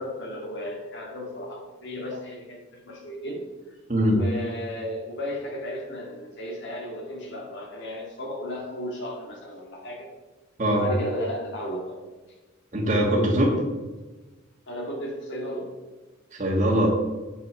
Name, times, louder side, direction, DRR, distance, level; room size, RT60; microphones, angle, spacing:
voice 1, 0.0-3.8 4.1-10.1 10.7-12.0 14.7-15.8, equal, 60° left, -2 dB, 2.3 m, -34 dB
voice 2, 12.7-13.6 16.3-16.9, equal, 40° right, -5 dB, 1.6 m, -22 dB
9.2 x 7.3 x 5.9 m, 1.2 s
head